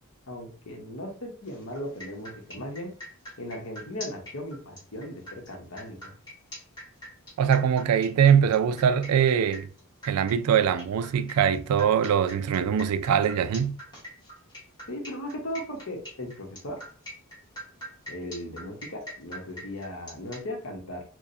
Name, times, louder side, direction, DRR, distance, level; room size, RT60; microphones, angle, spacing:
voice 1, 0.3-2.9 3.4-6.1 14.9-16.8 18.0-21.0, left 1 dB, 65° left, 1.0 m, -37 dB
sound 1, 1.4-20.4, equal, 20° left, 1.2 m, -44 dB
voice 2, 7.4-9.7 10.0-13.8, right 8 dB, 85° right, 0.3 m, -22 dB
4.6 x 2.2 x 2.6 m
head